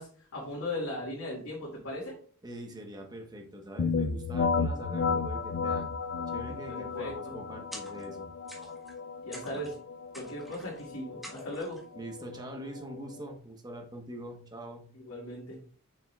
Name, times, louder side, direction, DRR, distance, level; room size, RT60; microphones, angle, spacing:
voice 1, 0.0-2.2 6.5-7.4 9.2-9.7 10.1-11.8 14.9-15.6, left 1 dB, 70° left, -6 dB, 2.3 m, -38 dB
voice 2, 2.4-5.9 6.3-8.3 9.5-9.6 11.9-14.9, right 1 dB, 20° right, 2 dB, 1.2 m, -43 dB
sound 1, 3.8-13.4, left 5 dB, 50° left, 0.4 m, -33 dB
sound 2, 7.7-8.2 8.5-9.0 9.3-9.8 10.1-10.8 11.2-11.9, equal, ahead, 1.5 m, -47 dB
6.9 x 6.0 x 2.4 m, 0.44 s
head